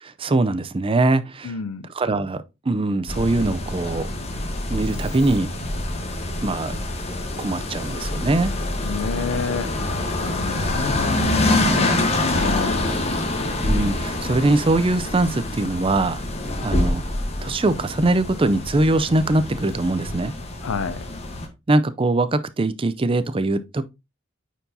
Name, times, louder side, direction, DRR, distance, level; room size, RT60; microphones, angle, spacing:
voice 1, 0.0-1.5 1.9-4.1 4.7-5.5 6.4-6.7 7.4-8.6 13.6-16.2 16.6-17.0 17.4-20.3 21.7-23.8, right 2 dB, 25° right, 0.5 m, -22 dB
voice 2, 1.4-1.9 8.8-12.9 20.6-21.1, left 5 dB, 90° left, 0.5 m, -30 dB
sound 1, 3.1-21.5, left 1 dB, 30° left, 1.2 m, -26 dB
9.1 x 4.6 x 2.7 m
head